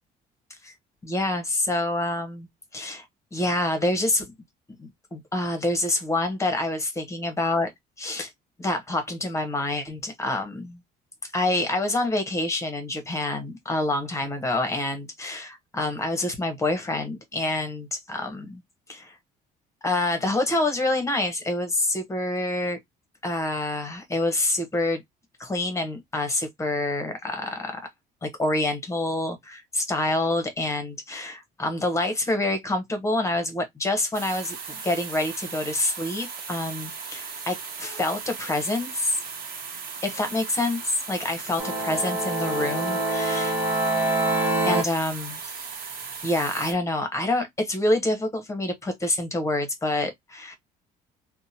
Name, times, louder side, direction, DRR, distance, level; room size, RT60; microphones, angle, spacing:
voice 1, 1.0-2.5 2.7-3.0 3.3-4.3 4.8-7.7 8.0-8.3 8.6-10.8 11.3-18.6 18.9-19.2 19.8-22.8 23.2-25.0 25.4-27.8 28.2-39.2 40.0-43.5 44.6-45.7 46.2-50.6, left 2 dB, 15° left, 1.0 m, -27 dB
sound 1, 34.1-46.7, right 5 dB, 55° right, 1.0 m, -37 dB
sound 2, 41.6-44.8, right 2 dB, 15° right, 1.3 m, -25 dB
2.8 x 2.2 x 2.7 m
cardioid pair, 110°, 17 cm